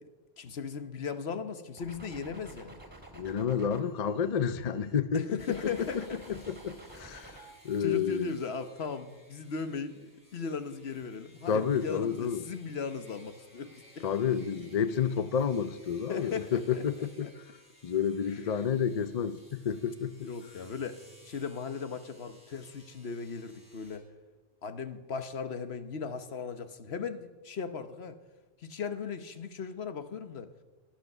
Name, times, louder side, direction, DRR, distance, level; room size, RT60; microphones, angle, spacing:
voice 1, 0.4-2.8 5.1-6.2 7.8-14.1 16.1-17.3 18.3-18.6 20.2-24.1 24.6-28.2 28.6-30.5, left 5 dB, 70° left, 1.3 m, -38 dB
sound 1, 1.8-5.0 5.4-7.7, right 1 dB, 10° right, 2.6 m, -51 dB
voice 2, 3.1-5.6 6.3-8.3 11.5-12.4 14.0-17.3 17.8-20.3, left 7 dB, 45° left, 0.6 m, -30 dB
sound 2, 5.4-24.0, equal, 15° left, 3.6 m, -59 dB
17.0 x 10.5 x 6.7 m
omnidirectional pair, 1.1 m